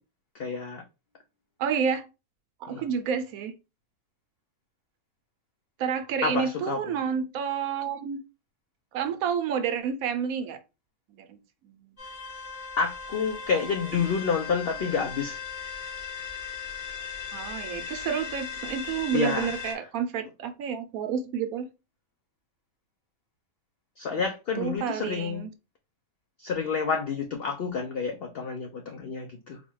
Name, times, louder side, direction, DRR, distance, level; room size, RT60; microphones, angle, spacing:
voice 1, 0.4-0.8 2.7-2.8 6.2-6.8 12.8-15.4 19.1-19.5 24.0-25.5 26.4-29.6, left 5 dB, 80° left, 0.5 m, -29 dB
voice 2, 1.6-2.1 2.6-3.5 5.8-8.2 8.9-10.6 11.1-11.4 11.6-12.0 17.3-21.7 24.6-25.5, right 7 dB, 75° right, 1.0 m, -30 dB
sound 1, 12.0-19.7, left 7 dB, 25° left, 1.2 m, -38 dB
4.1 x 2.3 x 3.0 m
omnidirectional pair, 1.6 m